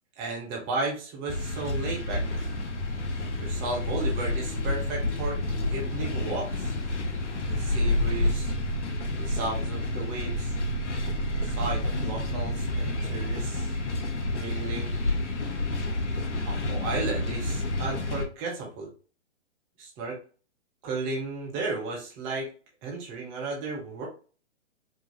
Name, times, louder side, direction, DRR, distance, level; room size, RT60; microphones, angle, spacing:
voice 1, 0.2-2.2 3.4-6.7 7.5-8.5 9.2-10.6 11.4-13.7 14.3-15.0 16.4-18.9 19.8-20.2 20.8-22.5 22.8-24.1, right 3 dB, 10° right, -1 dB, 0.3 m, -34 dB
sound 1, 1.3-18.3, left 2 dB, 75° left, 0.9 m, -31 dB
Car passing by / Accelerating revving vroom, 2.1-8.3, left 2 dB, 15° left, 0.7 m, -30 dB
Growling, 7.6-13.4, right 5 dB, 65° right, 0.9 m, -35 dB
4.6 x 2.3 x 2.8 m, 0.37 s
figure-of-eight pair, 125°, 36 cm